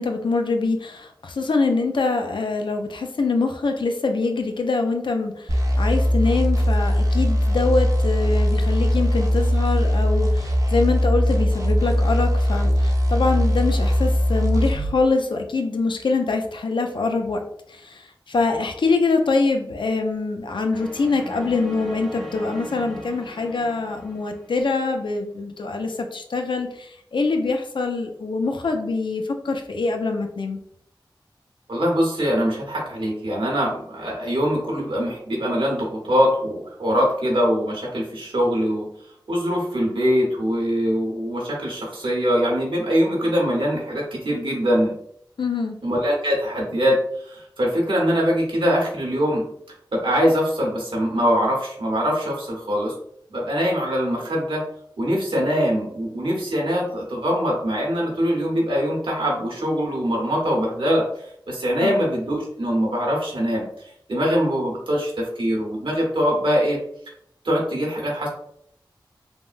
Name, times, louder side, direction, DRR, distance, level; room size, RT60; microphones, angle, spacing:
voice 1, 0.0-5.5 5.8-17.4 17.7-18.0 18.3-30.6 45.4-45.8 61.8-62.0, left 3 dB, 70° left, 4 dB, 0.4 m, -24 dB
sound 1, 5.5-14.9, equal, 40° right, 0.6 m, -20 dB
sound 2, 20.7-24.9, equal, ahead, 1.0 m, -39 dB
voice 2, 31.7-38.9 39.3-44.9 45.8-47.0 47.3-49.4 49.9-52.9 53.3-54.6 55.0-61.0 61.5-63.7 64.1-66.8 67.4-68.3, equal, 80° right, -2 dB, 1.0 m, -22 dB
3.5 x 2.1 x 2.4 m, 0.70 s
cardioid pair, 45°, 8 cm